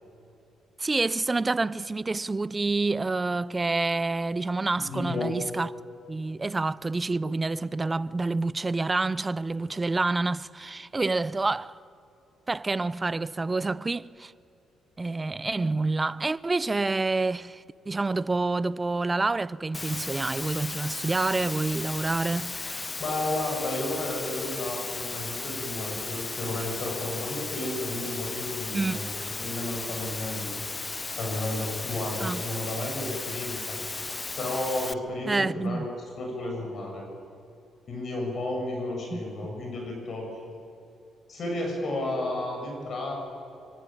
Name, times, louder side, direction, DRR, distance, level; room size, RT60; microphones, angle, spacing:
voice 1, 0.8-5.7 6.1-11.8 12.5-14.3 15.0-22.9 28.7-29.0 32.2-32.4 35.3-35.9 39.1-39.2, right 3 dB, 20° right, 0.6 m, -28 dB
voice 2, 4.7-5.3 23.0-29.1 29.4-30.6 31.1-33.8 34.4-35.9 36.2-37.0 37.9-40.3 41.3-43.1, left 2 dB, 55° left, 7.7 m, -32 dB
Water, 19.7-34.9, left 3 dB, 25° left, 0.5 m, -35 dB
25.0 x 24.5 x 9.1 m
cardioid pair, 90°, 0 cm